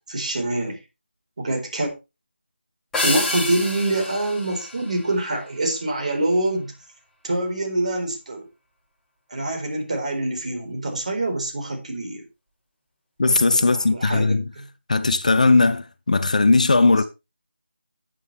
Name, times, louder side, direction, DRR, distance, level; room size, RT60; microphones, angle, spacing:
voice 1, 0.1-0.8 1.4-1.9 3.0-6.7 7.2-8.5 9.3-12.2 13.6-14.6, right 1 dB, 40° right, 4.2 m, -25 dB
sound 1, 2.9-5.6, left 2 dB, 5° left, 1.5 m, -28 dB
voice 2, 13.2-14.4 14.9-17.0, left 3 dB, 40° left, 0.6 m, -18 dB
12.5 x 9.1 x 3.3 m
figure-of-eight pair, 160°, 6 cm